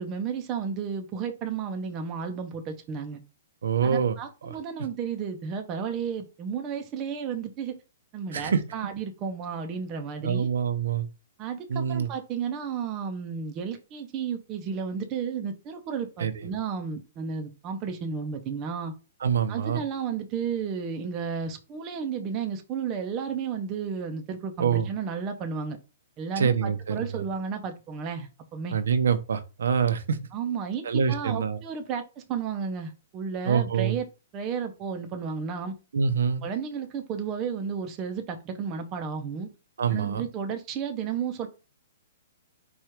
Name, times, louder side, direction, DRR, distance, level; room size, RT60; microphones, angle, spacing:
voice 1, 0.0-3.2 3.8-7.7 8.1-10.5 11.4-18.9 19.5-25.8 26.2-28.8 30.3-34.1 34.3-35.8 36.4-39.5 39.9-41.5, right 6 dB, 20° right, 0.5 m, -33 dB
voice 2, 3.6-4.2 4.4-4.6 8.3-8.6 10.2-11.1 11.7-12.1 16.2-16.3 19.2-19.8 24.6-24.9 26.4-27.2 28.7-30.2 30.8-31.6 33.5-34.0 35.9-36.4 39.8-40.2, right 6 dB, 85° right, 0.7 m, -25 dB
4.6 x 2.4 x 4.4 m
hypercardioid pair, 175°, 0 cm